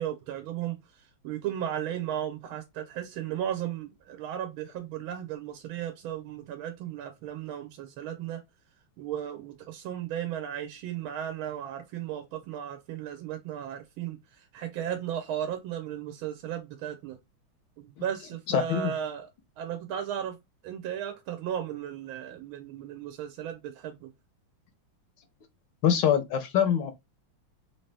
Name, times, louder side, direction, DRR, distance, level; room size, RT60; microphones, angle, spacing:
voice 1, 0.0-8.4 9.0-17.2 17.8-19.3 19.6-20.4 20.6-24.1, right 10 dB, 80° right, 1.5 m, -35 dB
voice 2, 18.5-18.9 25.8-26.9, left 9 dB, 70° left, 1.1 m, -24 dB
3.7 x 2.7 x 3.3 m
omnidirectional pair, 2.3 m